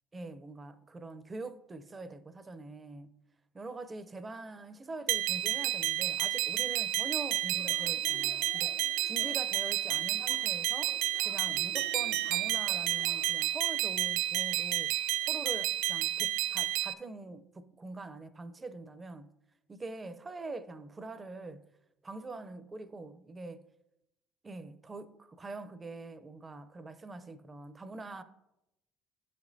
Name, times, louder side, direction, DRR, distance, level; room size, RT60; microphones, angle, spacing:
voice 1, 0.1-3.1 3.5-19.3 19.7-21.7 22.0-23.7 24.4-28.2, right 2 dB, 25° right, 0.5 m, -44 dB
sound 1, 5.1-16.9, right 13 dB, 80° right, 0.3 m, -31 dB
Yell / Cheering, 7.5-13.6, left 3 dB, 90° left, 1.9 m, -53 dB
11.5 x 5.1 x 2.7 m
supercardioid pair, 90°, 0 cm